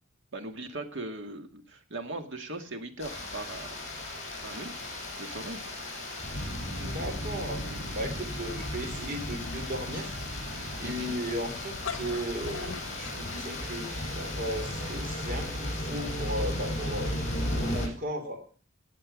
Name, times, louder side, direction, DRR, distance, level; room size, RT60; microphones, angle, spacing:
voice 1, 0.3-3.7 4.4-4.7 5.2-5.6 10.8-11.1, right 2 dB, 60° right, 6 dB, 2.1 m, -39 dB
sound 1, 3.0-17.9, left 1 dB, 35° left, 5.7 m, -35 dB
voice 2, 6.8-7.6 7.9-10.2 10.8-17.1 17.5-18.4, equal, 45° right, 4 dB, 3.2 m, -36 dB
sound 2, 11.6-14.2, left 6 dB, 75° left, 0.9 m, -40 dB
18.0 x 7.4 x 5.0 m, 0.41 s
head